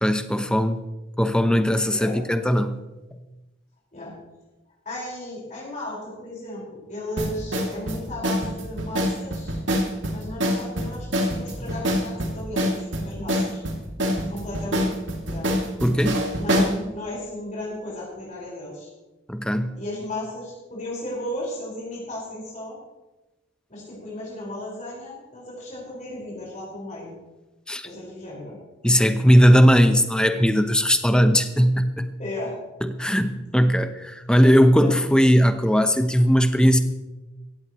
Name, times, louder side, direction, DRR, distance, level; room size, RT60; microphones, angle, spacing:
voice 1, 0.0-0.8 1.2-2.7 15.8-16.2 19.3-19.8 27.7-27.9 28.8-32.1 32.8-36.8, equal, 5° left, 8 dB, 0.8 m, -19 dB
voice 2, 4.9-9.6 10.1-13.6 14.3-14.9 15.3-15.5 16.3-18.9 19.7-22.8 23.7-27.1 27.8-28.6 32.2-32.5 34.7-35.0, left 1 dB, 40° left, -6 dB, 5.3 m, -35 dB
sound 1, 7.2-16.8, equal, 75° right, 2.7 m, -25 dB
17.0 x 15.5 x 3.2 m, 1.1 s
head